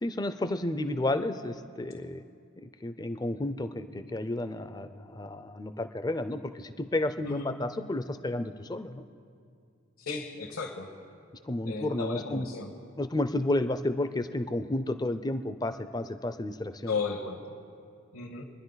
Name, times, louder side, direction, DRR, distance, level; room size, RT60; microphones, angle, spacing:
voice 1, 0.0-2.2 2.6-9.0 11.5-12.5 13.0-17.0, left 1 dB, 20° left, 10 dB, 0.5 m, -31 dB
voice 2, 10.0-10.9 11.6-12.7 16.9-17.4 18.1-18.4, left 4 dB, 75° left, -2 dB, 1.4 m, -34 dB
26.0 x 10.5 x 4.0 m, 2.4 s
head